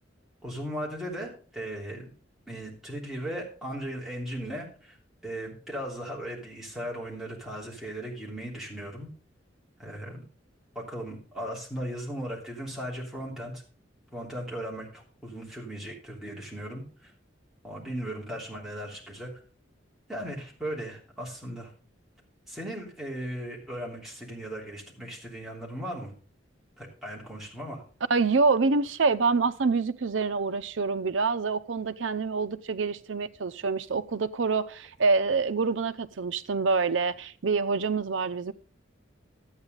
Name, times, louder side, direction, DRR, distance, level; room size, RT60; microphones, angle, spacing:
voice 1, 0.4-2.1 2.5-5.0 5.2-9.1 9.8-10.2 10.7-13.6 14.1-17.1 17.6-19.3 20.1-21.7 22.5-26.1 26.8-27.8, equal, ahead, 3.2 m, -37 dB
voice 2, 28.1-38.5, right 4 dB, 90° right, 0.6 m, -26 dB
12.0 x 8.9 x 3.9 m
head